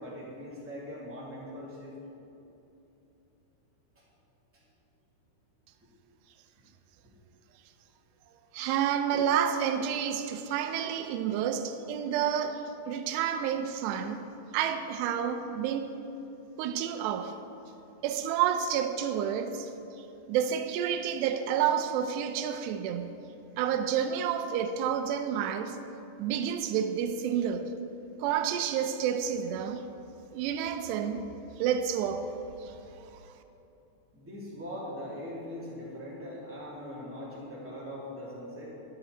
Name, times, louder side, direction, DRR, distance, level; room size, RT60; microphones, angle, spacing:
voice 1, 0.0-1.9 3.9-4.0 4.5-4.6 8.6-8.7 34.1-38.6, equal, 5° right, 1.9 m, -41 dB
voice 2, 8.5-14.3 14.5-16.0 16.6-17.4 18.0-19.7 20.3-23.1 23.6-25.8 26.2-27.7 28.2-29.8 30.3-31.3 31.6-32.3 32.6-33.1, right 8 dB, 80° right, 2.7 m, -29 dB
13.0 x 11.0 x 4.2 m
omnidirectional pair, 5.1 m